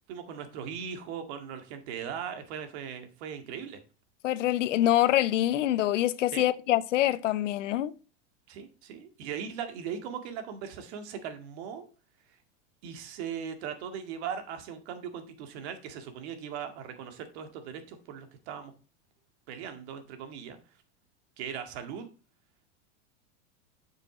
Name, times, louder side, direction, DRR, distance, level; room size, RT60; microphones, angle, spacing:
voice 1, 0.1-3.8 6.3-6.5 8.5-11.9 12.8-18.7 19.5-20.6 21.4-22.1, right 7 dB, 60° right, 2.0 m, -39 dB
voice 2, 4.2-7.9, left 13 dB, 85° left, 0.8 m, -25 dB
7.7 x 6.8 x 3.8 m
supercardioid pair, 120°, 36 cm